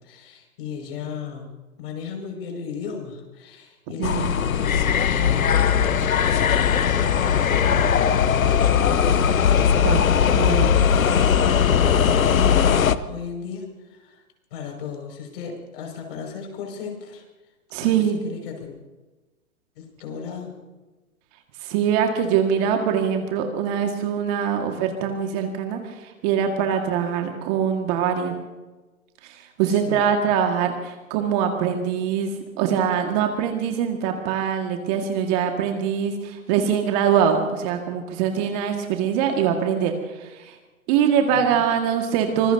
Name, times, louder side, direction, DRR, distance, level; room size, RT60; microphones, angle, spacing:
voice 1, 0.0-1.5 1.8-5.6 5.8-10.7 11.1-12.7 13.1-14.2 14.5-17.2 17.8-18.8 19.8-20.5 29.7-30.1 41.3-41.7, left 6 dB, 45° left, 2 dB, 5.6 m, -36 dB
sound 1, 4.0-12.9, left 7 dB, 75° left, 1.0 m, -19 dB
voice 2, 10.4-10.8 17.7-18.2 21.6-25.8 26.2-28.3 29.6-39.9 40.2-40.5 40.9-42.5, right 8 dB, 30° right, 4 dB, 1.8 m, -23 dB
25.5 x 21.0 x 2.7 m, 1.2 s
figure-of-eight pair, 130°, 42 cm